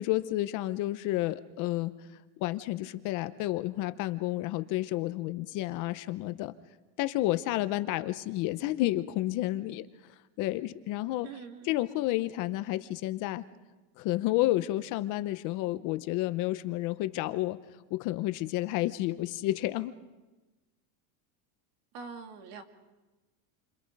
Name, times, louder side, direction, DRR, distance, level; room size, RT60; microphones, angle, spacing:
voice 1, 0.0-1.9 2.4-6.5 7.0-11.3 11.6-13.4 14.0-17.6 17.9-19.9, left 16 dB, 40° left, 12 dB, 0.8 m, -31 dB
voice 2, 11.2-11.7 21.9-22.6, right 5 dB, 55° right, 5 dB, 2.6 m, -44 dB
29.5 x 26.0 x 5.3 m, 1.1 s
cardioid pair, 165°, 46 cm